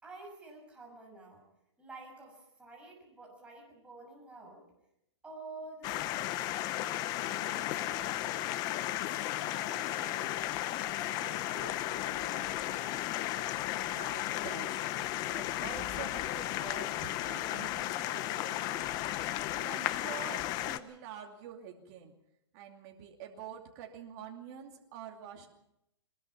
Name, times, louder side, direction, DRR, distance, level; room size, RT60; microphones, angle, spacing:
voice 1, 0.0-1.4 1.8-4.7 5.2-6.5 6.8-8.4 8.8-10.4 11.0-13.1, right 2 dB, 5° right, -1 dB, 6.5 m, -50 dB
sound 1, 5.8-20.8, left 14 dB, 25° left, 0.8 m, -34 dB
voice 2, 13.8-19.1 19.5-22.1 22.5-25.5, right 8 dB, 35° right, 2 dB, 2.6 m, -47 dB
22.5 x 21.0 x 5.8 m, 0.81 s
hypercardioid pair, 155°, 16 cm